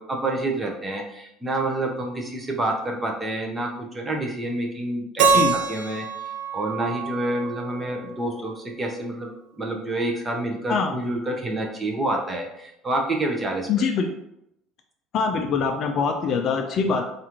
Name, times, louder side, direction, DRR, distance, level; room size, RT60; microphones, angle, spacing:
voice 1, 0.0-5.4 5.7-13.9, right 1 dB, 15° right, 1 dB, 0.6 m, -28 dB
Keyboard (musical), 5.2-8.2, right 5 dB, 80° right, 0.5 m, -25 dB
voice 2, 13.7-14.1 15.1-17.1, left 5 dB, 40° left, 5 dB, 0.4 m, -23 dB
4.7 x 2.4 x 2.9 m, 0.81 s
cardioid pair, 160°, 0 cm